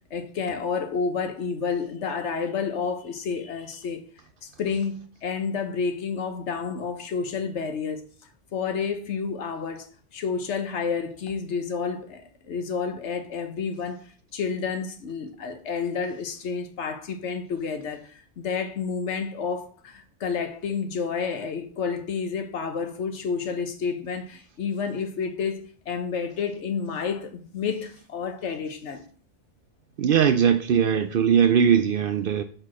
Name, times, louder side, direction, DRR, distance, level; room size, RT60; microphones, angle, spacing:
voice 1, 0.1-4.0 4.4-8.0 8.5-9.9 10.1-29.0, left 5 dB, 70° left, 1.2 m, -30 dB
voice 2, 30.0-32.4, right 8 dB, 60° right, 0.6 m, -20 dB
5.1 x 4.4 x 6.1 m
omnidirectional pair, 1.2 m